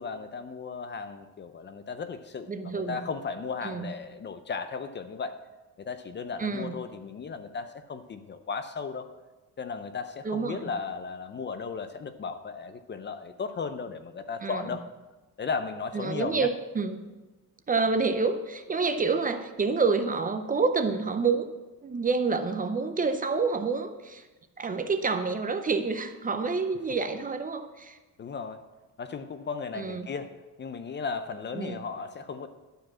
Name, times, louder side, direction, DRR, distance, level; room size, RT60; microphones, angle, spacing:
voice 1, 0.0-5.4 5.8-9.1 9.6-14.9 15.4-16.5 28.2-28.6 29.0-32.5, left 5 dB, 30° left, 10 dB, 0.5 m, -35 dB
voice 2, 2.5-3.0 3.6-3.9 6.4-6.7 10.2-10.7 14.4-14.6 15.9-17.0 17.7-21.5 21.8-24.2 24.6-28.0 29.7-30.1 31.5-31.8, right 4 dB, 25° right, 8 dB, 0.6 m, -28 dB
11.5 x 4.9 x 7.3 m, 1.2 s
cardioid pair, 150°, 35 cm